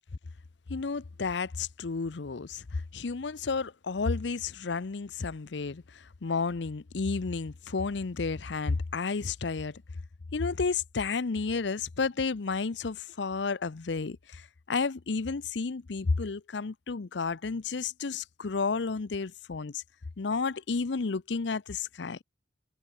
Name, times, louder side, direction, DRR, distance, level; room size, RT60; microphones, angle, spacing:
voice 1, 0.7-5.8 6.2-9.8 10.3-14.4 14.7-19.8 20.2-22.2, left 4 dB, 70° left, 0.7 m, -31 dB
head